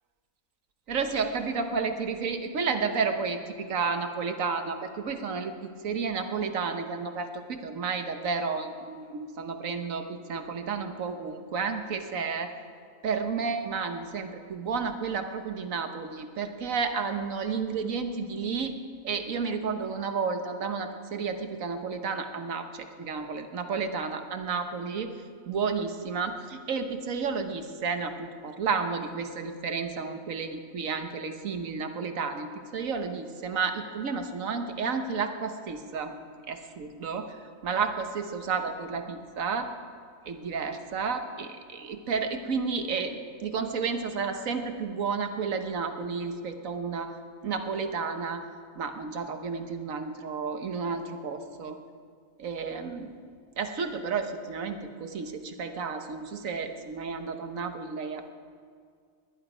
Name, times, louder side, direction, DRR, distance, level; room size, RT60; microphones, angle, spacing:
voice 1, 0.9-12.5 13.0-18.7 19.0-25.1 25.5-32.5 32.7-36.1 36.5-37.4 37.6-39.7 40.3-47.1 47.4-48.4 48.8-51.8 52.4-53.1 53.6-58.3, right 5 dB, 60° right, 7 dB, 1.3 m, -31 dB
19.5 x 11.0 x 5.0 m, 2.1 s
omnidirectional pair, 1.7 m